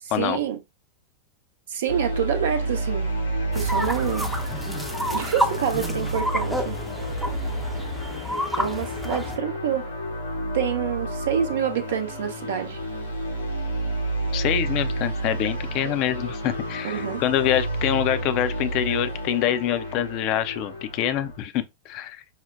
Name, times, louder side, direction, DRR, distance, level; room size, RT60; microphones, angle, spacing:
voice 1, 0.0-0.6 1.7-3.1 3.5-4.2 5.1-6.8 8.6-9.9 10.5-12.8 15.8-15.9 16.8-17.2, right 9 dB, 60° right, 0.7 m, -27 dB
sound 1, 1.9-21.4, right 1 dB, 85° left, 1.1 m, -30 dB
sound 2, 3.5-9.4, equal, 5° right, 0.6 m, -29 dB
voice 2, 14.3-22.4, left 11 dB, 40° left, 0.5 m, -25 dB
5.7 x 2.1 x 2.4 m
figure-of-eight pair, 90°, 0 cm